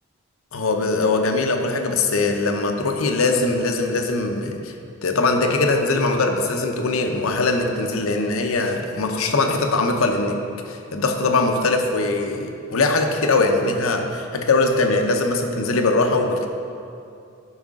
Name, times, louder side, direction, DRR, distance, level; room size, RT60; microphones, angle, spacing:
voice 1, 0.5-4.7 5.0-10.4 10.7-16.5, left 3 dB, 85° left, 4 dB, 0.7 m, -21 dB
11.5 x 4.9 x 3.7 m, 2.6 s
head